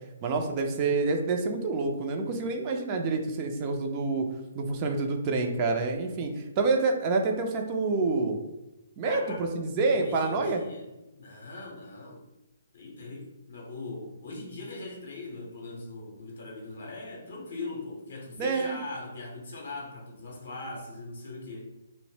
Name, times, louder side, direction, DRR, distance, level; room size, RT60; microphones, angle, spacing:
voice 1, 0.2-4.3 4.5-8.4 9.0-10.6 18.4-18.8, right 3 dB, 30° right, 3 dB, 0.4 m, -27 dB
voice 2, 9.0-9.4 9.9-10.8 11.1-12.2 12.7-21.6, left 2 dB, 65° left, -1 dB, 0.6 m, -40 dB
2.1 x 2.0 x 3.1 m, 0.99 s
figure-of-eight pair, 135°, 0 cm